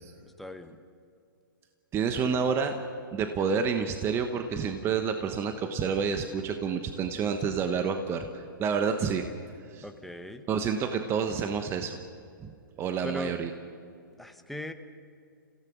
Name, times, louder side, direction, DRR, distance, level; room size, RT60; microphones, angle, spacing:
voice 1, 0.2-0.8 9.8-10.4 13.0-13.4 14.2-14.7, left 1 dB, ahead, 6 dB, 1.1 m, -39 dB
voice 2, 1.9-2.7 3.1-9.2 9.7-9.8 10.5-12.0 12.4-12.5 12.8-13.5, right 6 dB, 20° right, 6 dB, 1.1 m, -29 dB
28.5 x 17.0 x 6.3 m, 2.4 s
hypercardioid pair, 130°, 12 cm